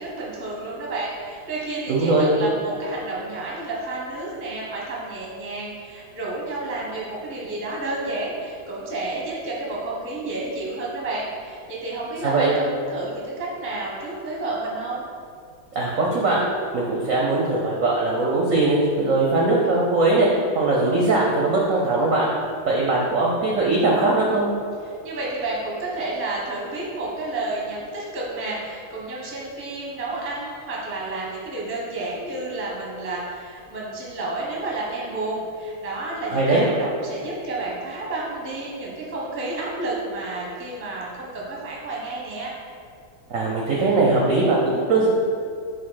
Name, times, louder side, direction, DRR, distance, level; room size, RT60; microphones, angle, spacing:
voice 1, 0.0-15.0 25.0-42.5, right 2 dB, 15° right, -4 dB, 0.5 m, -30 dB
voice 2, 1.9-2.3 12.2-12.5 15.7-16.5 16.7-22.3 22.7-24.5 36.3-36.7 43.3-45.1, right 2 dB, 65° right, -3 dB, 0.8 m, -20 dB
5.5 x 3.4 x 5.6 m, 2.2 s
omnidirectional pair, 2.3 m